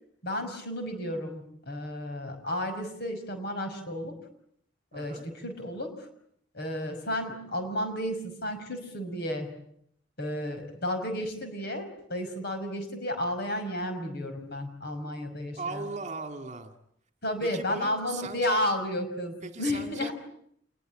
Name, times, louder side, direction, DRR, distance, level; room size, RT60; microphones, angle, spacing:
voice 1, 0.2-4.1 4.9-6.1 6.5-9.5 10.2-15.9 17.2-20.1, left 1 dB, 60° left, 7 dB, 5.7 m, -32 dB
voice 2, 4.9-5.3 15.5-16.7 17.4-18.6 19.4-20.1, right 4 dB, 40° right, 8 dB, 2.2 m, -38 dB
27.5 x 21.5 x 8.9 m, 0.70 s
head